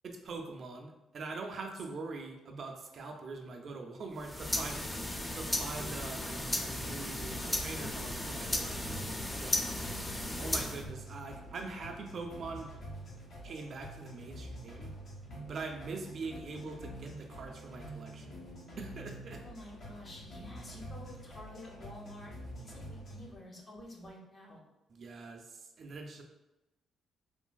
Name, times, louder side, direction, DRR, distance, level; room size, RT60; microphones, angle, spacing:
voice 1, 0.0-4.8 5.3-9.1 9.4-9.6 10.4-12.7 13.4-14.9 15.5-18.3 18.8-19.4 24.9-26.2, right 3 dB, 55° right, 2 dB, 0.3 m, -43 dB
sound 1, 4.2-10.9, left 1 dB, 15° left, 0.4 m, -35 dB
sound 2, 7.3-23.3, right 1 dB, 60° left, 1.0 m, -47 dB
voice 2, 9.4-10.0 19.4-24.6, left 1 dB, 35° left, -1 dB, 0.8 m, -50 dB
3.1 x 2.4 x 2.2 m, 0.98 s
cardioid pair, 90°, 0 cm